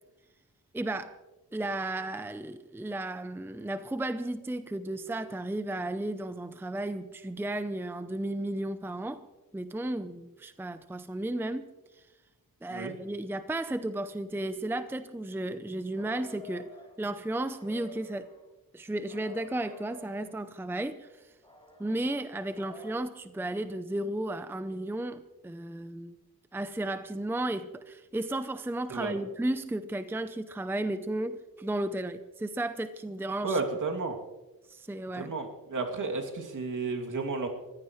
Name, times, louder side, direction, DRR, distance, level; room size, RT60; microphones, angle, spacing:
voice 1, 0.7-1.2 1.5-9.2 9.5-11.7 11.9-12.0 12.6-16.7 17.0-18.3 18.7-21.3 21.8-26.1 26.5-33.6 34.7-35.3, right 1 dB, 5° right, 0.6 m, -34 dB
sound 1, 15.9-16.9 17.5-18.4 19.1-20.3 21.4-23.0, left 1 dB, 15° left, 6.3 m, -49 dB
voice 2, 33.4-34.2 35.1-37.5, right 3 dB, 55° right, 2.7 m, -32 dB
24.0 x 15.5 x 3.2 m
cardioid pair, 90°, 36 cm